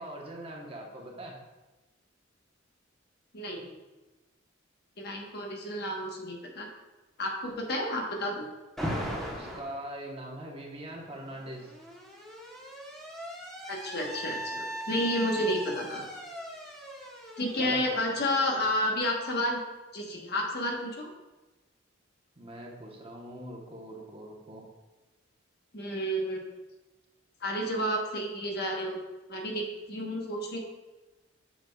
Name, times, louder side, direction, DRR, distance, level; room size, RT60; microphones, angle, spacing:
voice 1, 0.0-1.4 9.3-11.7 17.6-18.1 22.4-24.6, right 1 dB, 30° right, -1 dB, 1.1 m, -42 dB
voice 2, 3.3-3.7 5.0-6.7 7.2-8.5 13.7-16.0 17.4-19.6 19.9-21.1 25.7-26.5 27.4-29.0 29.3-30.6, left 1 dB, 55° left, 0 dB, 1.2 m, -31 dB
Alarm, 8.8-9.7 11.0-18.7, equal, ahead, 1.1 m, -39 dB
7.8 x 6.5 x 2.3 m, 1.1 s
head